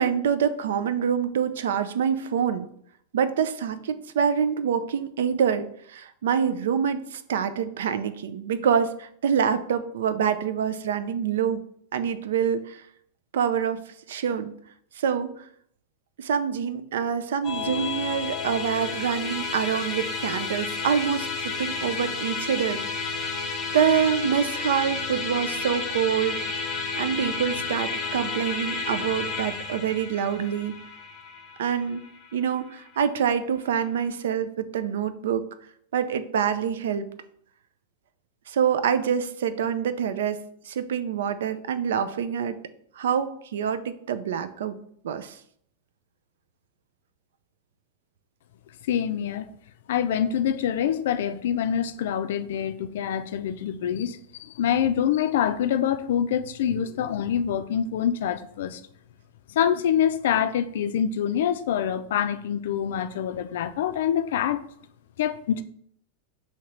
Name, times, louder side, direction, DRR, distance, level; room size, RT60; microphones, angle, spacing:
voice 1, 0.0-2.7 3.1-11.6 11.9-12.8 13.3-13.8 14.1-14.5 15.0-15.4 16.2-22.8 23.7-26.6 27.0-30.7 31.6-32.0 32.3-35.4 35.9-37.1 38.5-40.4 40.7-42.6 43.0-44.8 45.0-45.4, right 7 dB, 80° right, 11 dB, 0.4 m, -26 dB
Musical instrument, 17.4-33.0, left 4 dB, 30° left, 0.6 m, -31 dB
voice 2, 48.9-49.5 49.9-58.8 59.5-64.6 65.2-65.6, left 9 dB, 70° left, 11 dB, 0.3 m, -25 dB
5.8 x 2.8 x 3.1 m, 0.68 s
supercardioid pair, 150°, 0 cm